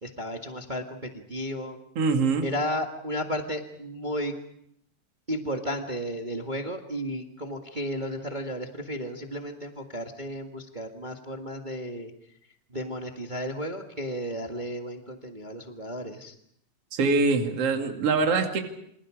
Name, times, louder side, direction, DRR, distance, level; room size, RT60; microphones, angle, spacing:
voice 1, 0.0-1.8 2.4-4.3 5.3-12.1 12.7-16.3, equal, 20° right, 3 dB, 1.3 m, -33 dB
voice 2, 2.0-2.4 16.9-18.6, right 4 dB, 50° right, 4 dB, 3.3 m, -23 dB
28.0 x 27.5 x 5.0 m, 0.72 s
omnidirectional pair, 3.5 m